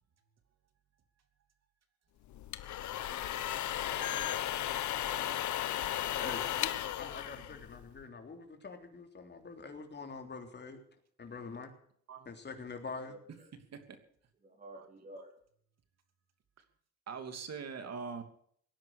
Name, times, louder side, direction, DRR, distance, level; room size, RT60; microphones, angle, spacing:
sound 1, 2.3-8.0, left 12 dB, 70° left, 1.1 m, -35 dB
voice 1, 4.0-4.3 5.1-5.5 6.2-6.5 13.0-13.5 14.4-15.3, right 1 dB, 25° right, -1 dB, 4.5 m, -52 dB
voice 2, 6.2-6.7 7.0-10.8 11.2-11.7 12.2-13.2, left 4 dB, 35° left, 5 dB, 3.5 m, -45 dB
voice 3, 14.7-15.2 17.1-18.2, right 5 dB, 60° right, 8 dB, 2.9 m, -43 dB
18.0 x 10.5 x 6.6 m, 0.63 s
cardioid pair, 90°, 30 cm